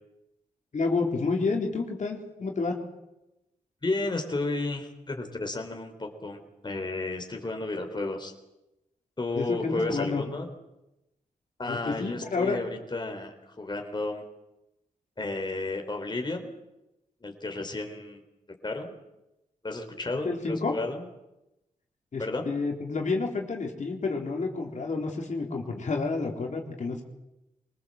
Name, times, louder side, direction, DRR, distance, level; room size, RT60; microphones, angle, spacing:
voice 1, 0.7-2.8 9.4-10.2 11.7-12.6 20.2-20.8 22.1-27.0, left 4 dB, 55° left, 1 dB, 3.9 m, -29 dB
voice 2, 3.8-8.3 9.2-10.5 11.6-14.2 15.2-16.5 17.2-18.2 18.6-19.0 19.6-21.1 22.2-22.5, left 2 dB, 30° left, 4 dB, 3.8 m, -32 dB
24.5 x 19.5 x 7.8 m, 0.94 s
cardioid pair, 60°, 14 cm